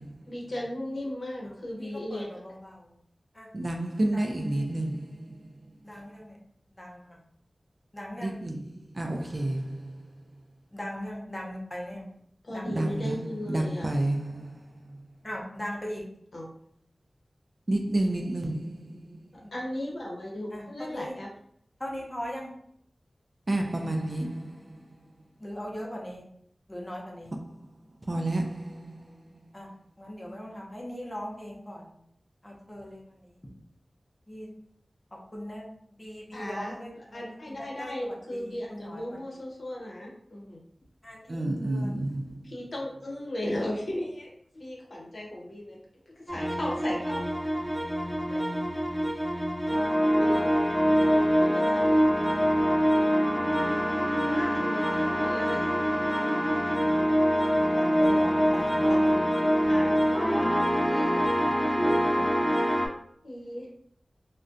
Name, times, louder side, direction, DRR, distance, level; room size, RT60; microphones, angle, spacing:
voice 1, 0.3-2.3 12.4-13.9 16.3-16.5 19.5-21.3 36.3-36.7 37.1-40.6 42.4-45.8 46.1-47.3 48.3-48.4 49.6-49.8 50.2-50.6 51.2-52.2 54.3-55.6 58.9-59.2 59.6-62.3 63.2-63.7, left 1 dB, 70° left, 0.7 m, -37 dB
voice 2, 1.4-2.9 3.3-3.5 4.1-4.4 5.8-6.4 6.7-7.2 7.9-8.4 10.7-12.1 12.5-13.0 15.2-16.0 19.4-19.5 20.5-21.1 21.8-22.5 25.4-26.2 26.7-27.3 29.5-29.7 30.0-31.9 32.4-33.5 34.3-34.5 35.3-35.6 36.0-39.2 41.0-42.0 42.3-42.4 57.7-59.2, equal, 30° left, 0.6 m, -39 dB
voice 3, 3.5-5.4 8.2-9.9 12.7-13.2 13.5-14.5 17.7-19.2 23.5-24.8 28.1-29.1 41.3-42.4, right 1 dB, 45° right, 0.3 m, -30 dB
sound 1, 46.3-62.9, equal, 5° right, 0.7 m, -25 dB
2.5 x 2.1 x 2.5 m
wide cardioid pair, 55°, 0 cm